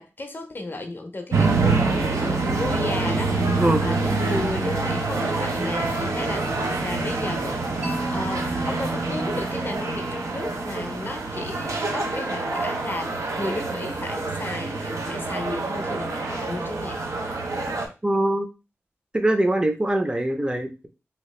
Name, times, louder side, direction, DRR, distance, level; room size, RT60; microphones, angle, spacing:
voice 1, 0.0-17.1, left 2 dB, 45° left, 0.5 m, -34 dB
sound 1, 1.3-17.9, right 3 dB, 80° right, 0.7 m, -26 dB
Mallet percussion, 7.8-11.8, right 2 dB, 60° right, 1.1 m, -35 dB
voice 2, 18.0-18.5 19.1-20.9, right 1 dB, 20° right, 0.5 m, -22 dB
2.8 x 2.4 x 3.1 m
wide cardioid pair, 65°, 5 cm